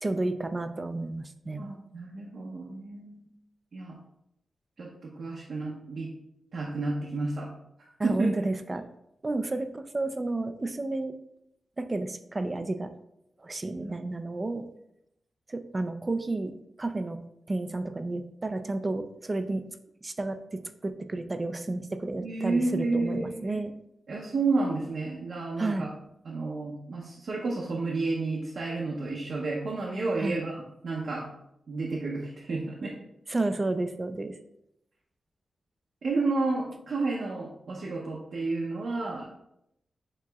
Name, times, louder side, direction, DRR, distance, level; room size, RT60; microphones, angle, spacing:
voice 1, 0.0-1.7 8.0-8.9 9.2-11.1 11.8-12.9 13.4-14.6 15.5-16.5 16.8-17.2 17.5-19.7 20.0-23.7 25.6-25.9 30.2-30.4 33.3-34.4, right 2 dB, 30° right, 9 dB, 0.4 m, -31 dB
voice 2, 1.6-3.3 3.7-3.9 4.8-6.1 6.5-7.5 7.8-8.3 13.8-13.9 22.2-23.6 24.1-25.9 26.2-30.5 30.8-31.2 31.7-32.9 36.0-39.3, right 3 dB, 70° right, -3 dB, 0.8 m, -31 dB
7.3 x 2.9 x 2.3 m, 0.81 s
wide cardioid pair, 105°, 0 cm